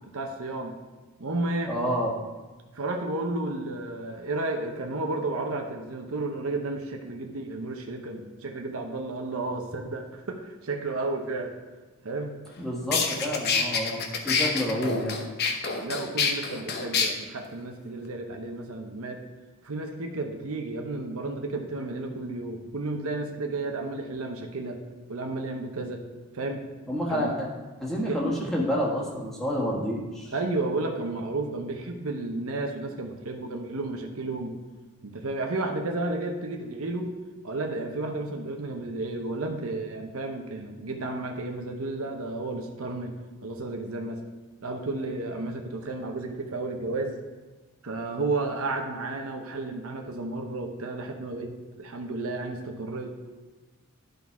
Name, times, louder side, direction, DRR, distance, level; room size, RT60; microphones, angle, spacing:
voice 1, 0.1-0.8 1.2-1.7 2.7-11.5 12.0-12.3 15.8-19.2 19.6-24.8 25.1-26.0 26.3-26.6 27.1-27.4 28.1-28.4 30.3-34.6 35.0-37.1 37.4-43.1 43.4-44.2 44.6-47.2 47.8-53.2, right 2 dB, 70° right, 3 dB, 0.8 m, -32 dB
voice 2, 1.7-2.1 12.6-15.2 26.9-27.5 27.8-30.3, equal, ahead, -4 dB, 1.5 m, -29 dB
sound 1, 12.5-12.6 12.9-17.1, left 5 dB, 45° left, 0.8 m, -26 dB
11.5 x 3.9 x 4.7 m, 1.3 s
head